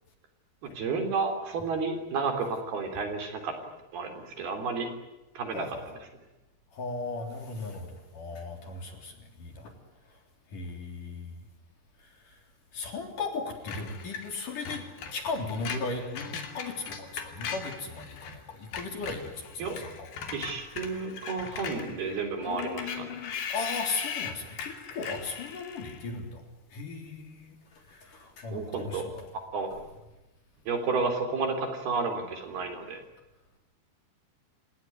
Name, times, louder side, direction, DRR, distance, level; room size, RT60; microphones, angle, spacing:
voice 1, 0.8-3.5 3.9-4.9 5.4-5.7 19.6-19.8 20.3-23.1 28.5-29.1 29.5-29.7 30.7-33.0, right 4 dB, 60° right, 6 dB, 5.3 m, -31 dB
voice 2, 5.5-5.8 6.7-9.1 9.4-9.7 10.5-11.4 12.7-14.8 15.1-20.1 22.5-26.4 26.7-27.5 27.9-29.2, left 4 dB, 45° left, 4 dB, 4.9 m, -37 dB
Screech, 13.7-18.4 18.6-26.1, left 6 dB, 65° left, 4.8 m, -39 dB
30.0 x 18.0 x 9.6 m, 1.0 s
omnidirectional pair, 5.3 m